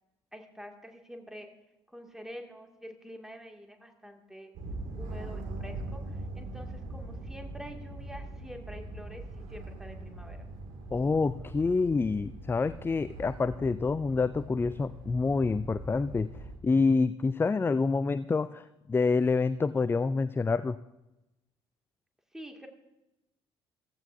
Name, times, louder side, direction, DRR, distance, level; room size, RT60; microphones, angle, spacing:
voice 1, 0.3-1.5 1.9-4.5 5.0-9.2 9.5-10.5 22.3-22.7, equal, 5° right, 3 dB, 2.1 m, -47 dB
sound 1, 4.5-16.6, right 2 dB, 60° right, 2.2 m, -42 dB
voice 2, 10.9-16.3 16.6-20.8, left 4 dB, 15° left, 15 dB, 0.4 m, -27 dB
15.0 x 14.5 x 2.6 m, 0.98 s
figure-of-eight pair, 50°, 14 cm